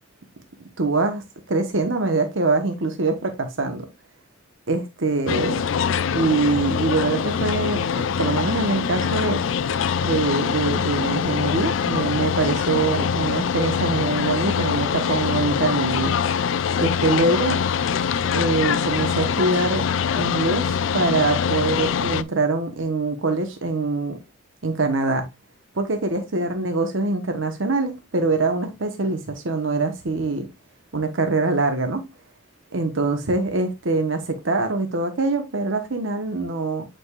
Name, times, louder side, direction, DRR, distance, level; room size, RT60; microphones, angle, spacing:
voice 1, 0.8-1.2 1.5-3.9 4.7-5.6 6.1-9.4 10.0-16.2 16.8-17.6 18.3-19.8 20.2-24.2 24.6-25.3 25.7-30.5 30.9-32.0 32.7-36.9, right 3 dB, 80° right, 1.1 m, -24 dB
sound 1, 5.3-22.2, left 7 dB, 80° left, 0.4 m, -24 dB
8.3 x 5.2 x 2.4 m
head